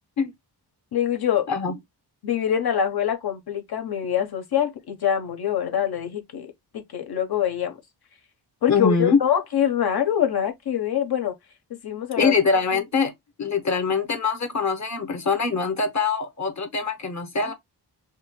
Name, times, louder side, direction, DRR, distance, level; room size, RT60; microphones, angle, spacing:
voice 1, 0.9-1.5 2.2-7.8 8.6-11.3 11.8-12.3, left 9 dB, 60° left, 1.2 m, -24 dB
voice 2, 8.7-9.2 12.2-13.1 13.4-17.5, left 5 dB, 40° left, 1.2 m, -23 dB
6.4 x 2.9 x 2.2 m
wide cardioid pair, 105°, 42 cm